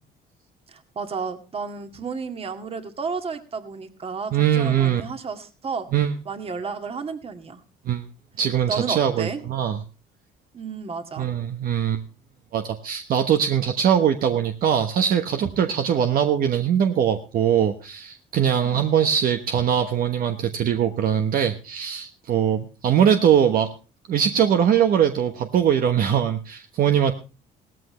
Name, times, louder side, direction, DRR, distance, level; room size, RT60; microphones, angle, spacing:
voice 1, 0.7-5.9 6.3-7.6 8.7-9.4 10.5-11.3 18.6-18.8, right 5 dB, 35° right, 7 dB, 2.0 m, -32 dB
voice 2, 4.3-5.0 5.9-6.1 7.9-8.0 8.4-9.8 11.2-12.0 12.5-23.7 24.1-27.1, right 9 dB, 60° right, 6 dB, 1.2 m, -21 dB
17.0 x 14.0 x 3.1 m, 0.33 s
cardioid pair, 110°, 17 cm